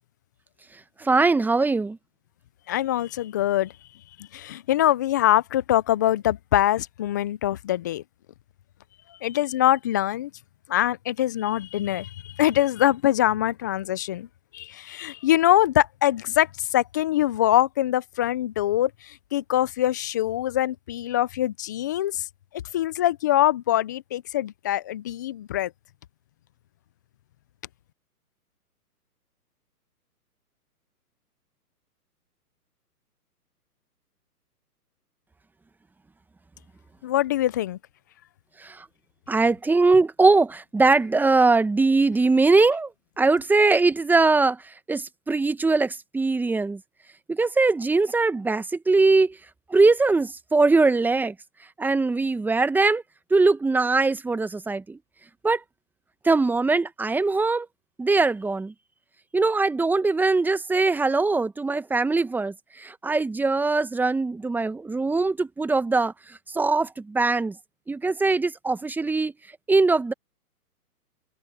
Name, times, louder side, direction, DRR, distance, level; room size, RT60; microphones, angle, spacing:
voice 1, 1.0-2.0 38.6-38.8 39.3-42.9 43.2-46.8 47.3-49.4 49.7-51.3 51.8-53.0 53.3-55.0 55.4-55.6 56.2-57.7 58.0-58.7 59.3-67.5 67.9-69.3 69.7-70.1, right 3 dB, 5° right, 1.1 m, -21 dB
voice 2, 2.7-3.7 4.2-8.0 9.2-10.3 10.7-14.3 14.5-22.3 22.7-25.7 37.0-37.8, left 13 dB, 15° left, 0.4 m, -23 dB
figure-of-eight pair, 125°, 47 cm